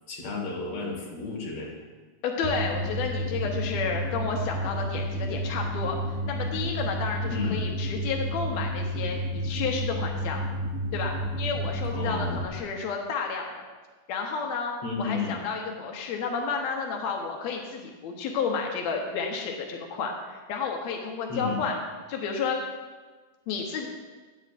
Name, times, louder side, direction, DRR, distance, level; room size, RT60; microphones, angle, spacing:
voice 1, 0.1-1.7 7.3-7.6 11.9-12.4 14.8-15.4 21.3-21.6, left 4 dB, 45° left, -2 dB, 2.4 m, -32 dB
voice 2, 2.2-10.4 10.9-13.6 14.1-14.7 15.0-21.8 22.1-22.6 23.5-23.9, left 5 dB, 85° left, 1 dB, 1.5 m, -31 dB
sound 1, 2.4-12.4, equal, 80° right, 2.8 m, -31 dB
16.0 x 9.2 x 2.5 m, 1.3 s
omnidirectional pair, 4.4 m